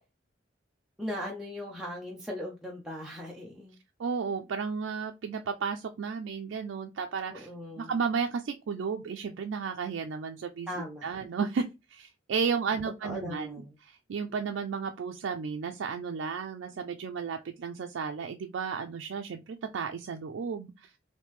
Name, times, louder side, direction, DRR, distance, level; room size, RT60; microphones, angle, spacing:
voice 1, 1.0-3.8 7.3-7.9 10.7-11.0 13.0-13.8, left 1 dB, 5° right, 0.5 m, -38 dB
voice 2, 4.0-10.7 11.0-11.6 11.9-20.9, right 5 dB, 85° right, 0.4 m, -33 dB
3.4 x 2.7 x 3.1 m
head